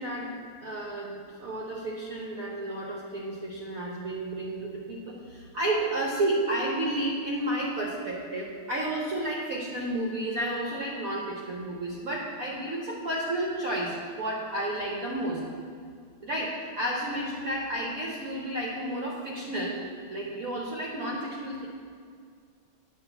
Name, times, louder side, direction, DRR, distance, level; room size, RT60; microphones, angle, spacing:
voice 1, 0.0-15.4 16.2-19.8 20.1-21.7, right 1 dB, 55° right, -3 dB, 1.0 m, -31 dB
9.4 x 3.3 x 6.8 m, 2.1 s
omnidirectional pair, 2.2 m